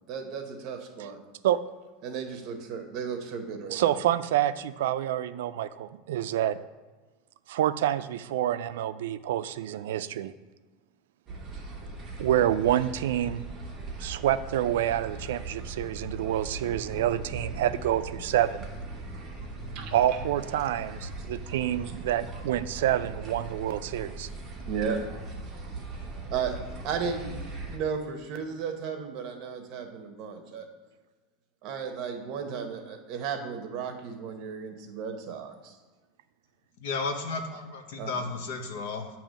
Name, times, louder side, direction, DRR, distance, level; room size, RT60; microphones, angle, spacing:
voice 1, 0.1-1.2 2.0-3.9 19.7-20.2 24.7-25.0 26.3-26.5 26.8-27.4 27.7-30.7 31.6-35.8 38.0-38.3, right 6 dB, 40° right, 5 dB, 0.9 m, -34 dB
voice 2, 3.7-6.6 7.5-10.3 12.2-13.4 14.0-18.7 19.9-24.3, right 12 dB, 90° right, 13 dB, 0.3 m, -27 dB
sound 1, 11.3-27.8, right 2 dB, 15° right, 1.0 m, -39 dB
voice 3, 36.8-39.1, left 4 dB, 65° left, 4 dB, 0.9 m, -33 dB
8.8 x 2.9 x 6.2 m, 1.3 s
supercardioid pair, 175°, 0 cm